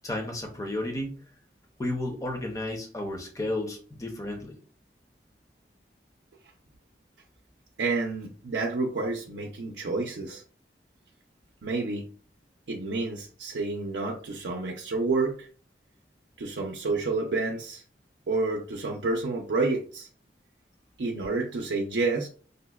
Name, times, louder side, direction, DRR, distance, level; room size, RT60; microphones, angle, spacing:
voice 1, 0.0-1.2 1.8-4.5, left 1 dB, 20° left, 3 dB, 0.5 m, -32 dB
voice 2, 7.8-10.4 11.6-12.1 12.7-15.5 16.4-17.8 18.3-20.1 21.0-22.3, right 3 dB, 80° right, 0 dB, 0.5 m, -29 dB
5.0 x 2.1 x 2.2 m, 0.41 s
head